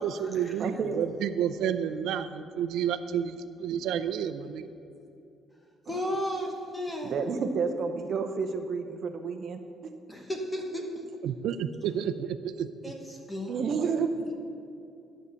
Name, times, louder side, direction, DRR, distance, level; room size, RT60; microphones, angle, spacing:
voice 1, 0.0-4.7 11.2-12.7, right 9 dB, 80° right, 11 dB, 0.5 m, -30 dB
voice 2, 0.6-1.0 5.9-6.0 7.1-9.6 13.5-14.3, right 5 dB, 45° right, 5 dB, 0.7 m, -30 dB
voice 3, 5.9-7.2 10.1-10.9 12.8-13.6, equal, 10° left, 1 dB, 1.0 m, -34 dB
11.0 x 6.3 x 6.9 m, 2.6 s
cardioid pair, 145°, 0 cm